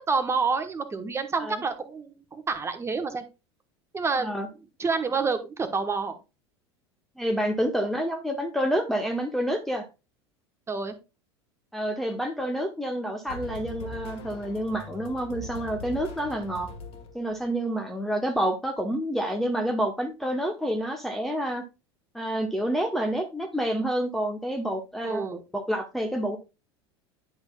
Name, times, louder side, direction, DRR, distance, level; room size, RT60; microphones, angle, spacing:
voice 1, 0.1-3.2 3.9-4.4 4.8-6.2 10.7-11.0 25.0-25.4, right 4 dB, 20° right, 8 dB, 1.2 m, -28 dB
voice 2, 7.2-9.8 11.7-16.7 17.1-21.6 22.1-25.2 25.5-26.4, equal, ahead, 2 dB, 1.0 m, -28 dB
sound 1, 13.3-17.4, left 2 dB, 45° left, 1.9 m, -41 dB
10.5 x 6.3 x 2.3 m, 0.27 s
figure-of-eight pair, 75°, 14 cm